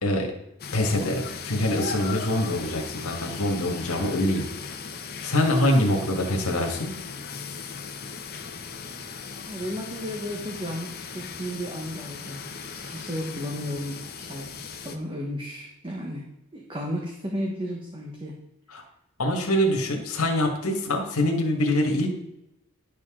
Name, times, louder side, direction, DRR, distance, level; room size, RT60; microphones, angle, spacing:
voice 1, 0.0-0.3 0.7-4.4 5.2-6.9 18.7-18.8 19.2-22.1, left 1 dB, 80° left, 2 dB, 1.7 m, -24 dB
sound 1, 0.6-15.0, left 5 dB, 45° left, 0.9 m, -38 dB
voice 2, 9.5-16.2 16.5-18.4, equal, 20° right, -1 dB, 1.1 m, -34 dB
10.5 x 6.7 x 3.8 m, 0.87 s
head